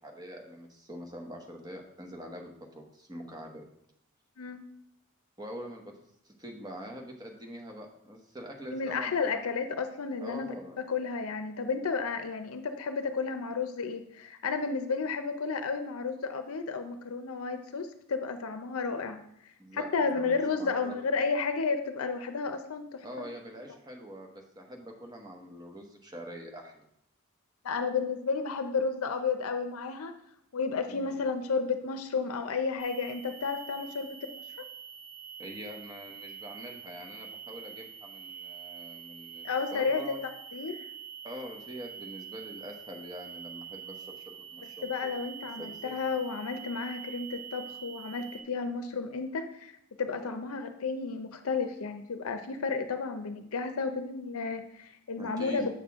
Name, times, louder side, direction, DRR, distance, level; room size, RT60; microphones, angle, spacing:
voice 1, 0.0-3.6 5.4-5.9 6.2-9.4 10.2-10.8 19.6-20.9 23.0-26.9 30.9-31.2 35.4-40.2 41.2-45.1 45.6-46.0 55.2-55.7, equal, 20° right, 1 dB, 1.0 m, -44 dB
voice 2, 8.7-10.5 10.9-19.2 19.7-23.0 27.6-30.1 30.5-34.4 39.4-40.0 40.5-40.9 44.8-49.7 50.0-55.7, left 4 dB, 85° left, 8 dB, 0.6 m, -32 dB
sound 1, 32.8-48.4, right 8 dB, 25° left, 0.5 m, -45 dB
7.4 x 6.6 x 3.5 m, 0.73 s
head